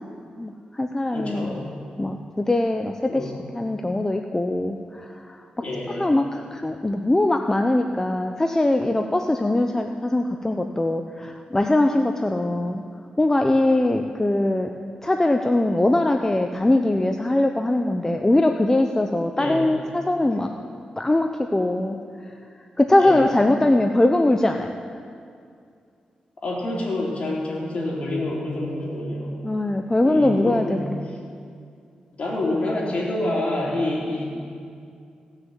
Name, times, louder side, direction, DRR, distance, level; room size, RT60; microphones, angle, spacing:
voice 1, 0.4-1.6 2.0-5.4 6.0-12.8 13.2-14.7 15.0-20.5 21.0-22.0 22.8-24.7 29.4-31.0, left 1 dB, 20° left, 5 dB, 0.6 m, -21 dB
voice 2, 1.1-1.7 3.1-3.4 5.6-6.1 19.4-19.6 23.0-23.2 26.4-29.5 30.0-30.9 32.2-34.2, left 1 dB, 50° left, -4 dB, 3.7 m, -27 dB
17.0 x 6.5 x 7.4 m, 2.3 s
cardioid pair, 70°, 3 cm